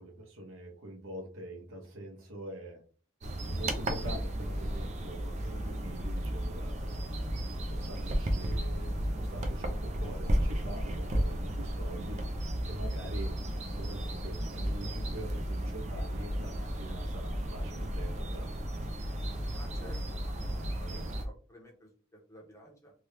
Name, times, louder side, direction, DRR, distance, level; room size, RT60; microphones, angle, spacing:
voice 1, 0.0-2.8 3.4-6.9 7.7-12.2 12.6-13.3 13.7-18.5, right 1 dB, 75° right, 0 dB, 0.9 m, -44 dB
sound 1, 3.2-21.2, right 1 dB, 35° right, 0.4 m, -34 dB
voice 2, 19.5-20.4 20.8-22.9, equal, 15° left, -1 dB, 0.8 m, -53 dB
2.9 x 2.3 x 3.3 m, 0.41 s
head